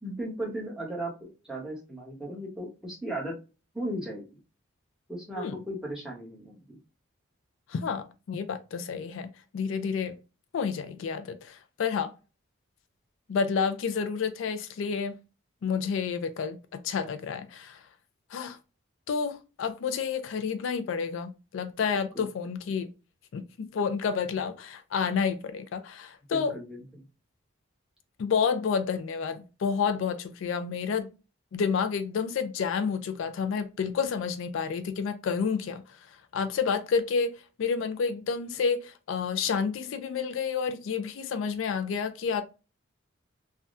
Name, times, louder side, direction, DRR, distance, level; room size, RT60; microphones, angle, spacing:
voice 1, 0.0-3.3 3.7-4.2 5.1-6.8 22.1-22.2 26.3-26.8, right 1 dB, 5° right, 0.9 m, -36 dB
voice 2, 7.7-10.2 10.5-12.1 13.3-15.2 15.6-17.9 18.3-18.6 19.1-22.9 23.3-26.5 28.2-31.1 31.5-42.4, left 6 dB, 65° left, 0.3 m, -30 dB
3.4 x 2.2 x 2.5 m
head